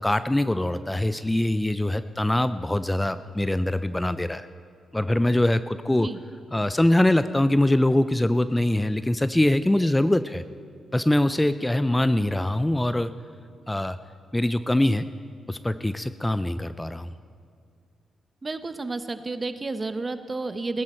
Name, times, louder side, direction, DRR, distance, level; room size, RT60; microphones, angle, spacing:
voice 1, 0.0-4.5 4.9-6.1 6.5-10.4 10.9-13.1 13.7-14.0 14.3-15.0 15.5-17.1, left 1 dB, 15° left, 13 dB, 0.5 m, -23 dB
voice 2, 18.4-20.8, right 3 dB, 35° right, 10 dB, 1.0 m, -31 dB
19.0 x 10.5 x 4.4 m, 2.3 s
supercardioid pair, 55°, 0 cm